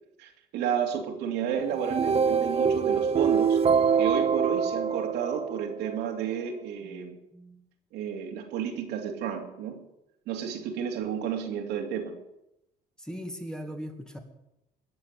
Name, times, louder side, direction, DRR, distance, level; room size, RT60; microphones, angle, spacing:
voice 1, 0.2-3.6 4.0-7.2 7.9-9.9 10.3-12.2, right 8 dB, 90° right, 2 dB, 2.8 m, -32 dB
sound 1, 1.7-6.0, right 6 dB, 35° right, 0.9 m, -25 dB
voice 2, 6.8-7.6 13.0-14.2, equal, 5° left, 4 dB, 2.3 m, -40 dB
20.0 x 7.3 x 8.8 m, 0.87 s
cardioid pair, 110°, 17 cm